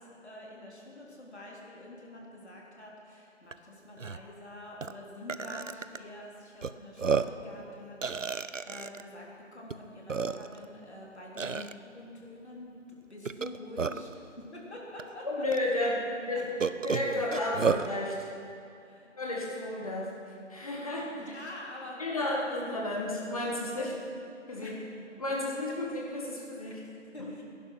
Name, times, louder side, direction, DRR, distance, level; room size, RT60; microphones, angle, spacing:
voice 1, 0.0-15.3 16.0-16.1 18.7-19.1 21.1-22.6 23.8-23.9 24.6-24.9 26.7-27.4, left 1 dB, 60° left, -3 dB, 3.7 m, -46 dB
Burping eructation, 3.5-3.6 4.0-4.2 4.8-4.9 5.3-6.0 6.6-6.7 7.0-7.4 8.0-9.0 9.7-9.8 10.1-10.6 11.4-11.7 13.2-14.1 15.0-15.1 15.5-15.6 16.6-17.9, right 5 dB, 90° right, 0.7 m, -31 dB
voice 2, 15.2-16.5 16.8-18.3 19.2-21.1 22.0-23.9 24.5-24.8 25.2-26.8 27.2-27.3, left 1 dB, 30° left, -2 dB, 1.8 m, -32 dB
17.5 x 11.0 x 6.0 m, 2.5 s
figure-of-eight pair, 160°, 37 cm